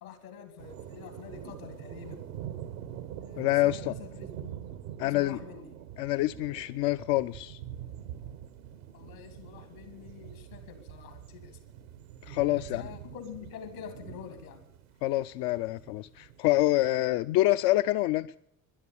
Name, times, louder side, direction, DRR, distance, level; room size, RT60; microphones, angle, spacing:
voice 1, 0.0-2.3 3.1-4.5 5.0-5.7 8.9-11.6 12.6-14.6, left 8 dB, 80° left, 8 dB, 2.4 m, -46 dB
sound 1, 0.6-16.7, right 10 dB, 75° right, 1.0 m, -45 dB
voice 2, 3.4-3.9 5.0-5.4 6.0-7.6 12.2-12.8 15.0-18.4, left 16 dB, 60° left, 11 dB, 0.5 m, -26 dB
12.0 x 11.0 x 8.4 m, 0.77 s
hypercardioid pair, 60°, 42 cm